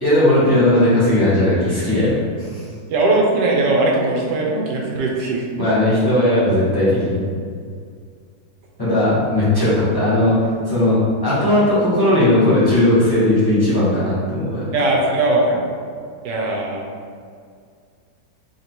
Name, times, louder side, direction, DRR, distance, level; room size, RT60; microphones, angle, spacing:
voice 1, 0.0-2.6 5.6-7.2 8.8-11.0 11.2-14.6, left 1 dB, 15° left, -10 dB, 0.8 m, -17 dB
voice 2, 2.9-5.5 14.7-15.7 16.2-16.8, right 2 dB, 70° right, -2 dB, 1.2 m, -19 dB
3.2 x 2.7 x 4.3 m, 2.2 s
omnidirectional pair, 2.1 m